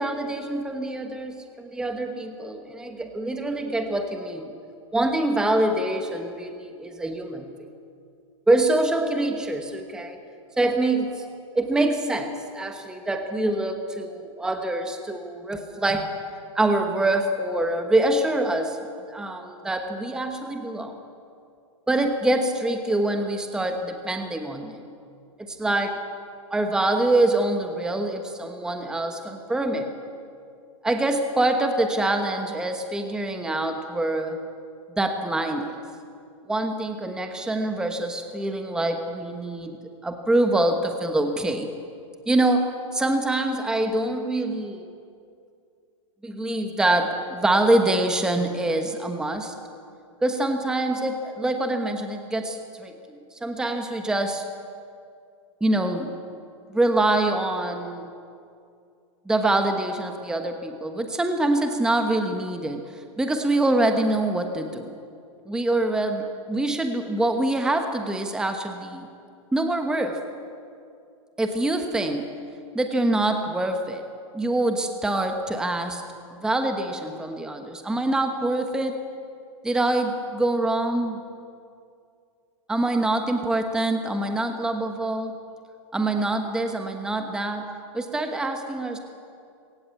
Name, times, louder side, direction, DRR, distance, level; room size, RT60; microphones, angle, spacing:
voice 1, 0.0-4.5 4.9-7.5 8.5-10.2 10.6-11.2 11.5-16.1 16.5-18.8 19.1-21.0 21.9-24.8 25.4-26.0 26.5-29.9 30.8-34.4 35.0-35.8 36.5-41.7 42.3-44.9 46.2-49.5 50.2-54.4 55.6-56.1 56.7-58.1 59.3-65.0 65.5-69.1 69.5-70.2 71.4-72.3 72.7-74.0 74.3-76.0 76.3-79.0 79.6-81.2 82.7-85.4 85.9-89.0, right 2 dB, 5° right, 5 dB, 1.1 m, -25 dB
21.5 x 17.5 x 8.4 m, 2.4 s
hypercardioid pair, 150°, 17 cm